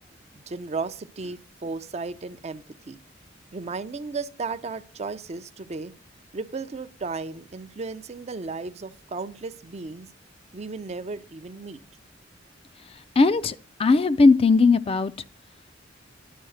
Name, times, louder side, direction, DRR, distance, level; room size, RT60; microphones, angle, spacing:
voice 1, 0.3-3.0 3.5-5.9 6.3-10.1 10.5-11.8, right 4 dB, 35° right, 0.5 m, -35 dB
voice 2, 13.2-15.1, left 3 dB, 30° left, 0.4 m, -18 dB
11.0 x 4.8 x 6.4 m
head